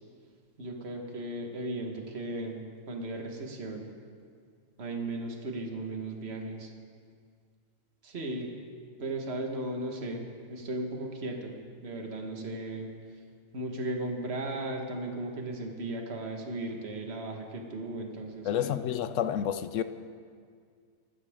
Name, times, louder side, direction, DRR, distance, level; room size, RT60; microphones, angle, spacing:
voice 1, 0.6-2.6 2.9-3.9 4.8-6.7 8.0-8.5 9.0-12.9 13.5-18.8, right 2 dB, 45° right, 1.8 m, -36 dB
voice 2, 18.4-19.8, left 10 dB, 65° left, 0.9 m, -29 dB
26.0 x 12.5 x 3.7 m
omnidirectional pair, 1.6 m